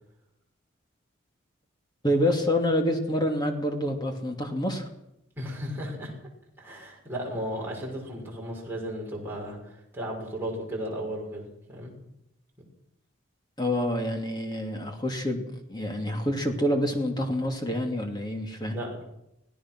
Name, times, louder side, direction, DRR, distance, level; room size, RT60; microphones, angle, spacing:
voice 1, 2.0-4.8 13.6-18.7, equal, 20° left, 3 dB, 2.7 m, -27 dB
voice 2, 5.4-6.1 6.6-11.9 18.7-19.0, equal, 10° right, -3 dB, 6.0 m, -35 dB
25.5 x 17.0 x 6.2 m, 0.82 s
head